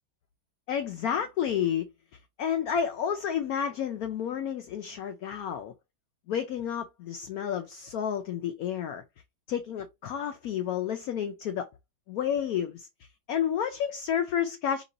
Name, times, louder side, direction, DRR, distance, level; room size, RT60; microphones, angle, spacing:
voice 1, 0.7-1.9 2.4-5.7 6.3-9.0 9.5-11.7 12.1-14.8, left 8 dB, 75° left, 0.8 m, -30 dB
4.1 x 3.0 x 3.8 m
omnidirectional pair, 2.0 m